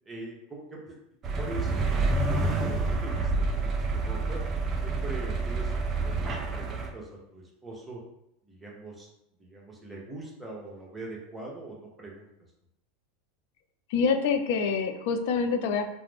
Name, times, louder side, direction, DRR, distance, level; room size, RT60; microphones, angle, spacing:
voice 1, 0.1-1.0 1.4-4.4 4.8-8.0 8.5-9.1 9.4-12.3, right 2 dB, 10° right, -3 dB, 0.8 m, -42 dB
sound 1, 1.2-6.9, right 3 dB, 35° right, 0.4 m, -28 dB
voice 2, 13.9-15.9, left 5 dB, 65° left, 7 dB, 0.3 m, -26 dB
2.4 x 2.1 x 3.3 m, 0.80 s
hypercardioid pair, 110°, 0 cm